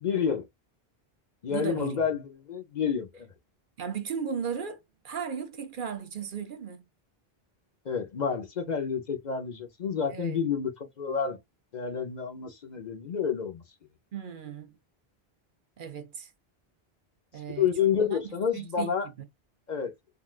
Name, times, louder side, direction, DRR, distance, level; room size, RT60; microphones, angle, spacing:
voice 1, 0.0-0.4 1.4-3.3 7.8-11.4 11.7-13.6 17.6-19.1 19.7-19.9, left 7 dB, 50° left, 0.7 m, -29 dB
voice 2, 1.5-2.0 3.8-6.8 10.1-10.4 14.1-14.7 15.8-16.3 17.3-17.7 18.0-18.9, right 7 dB, 60° right, 0.8 m, -36 dB
3.7 x 2.3 x 2.3 m
omnidirectional pair, 1.0 m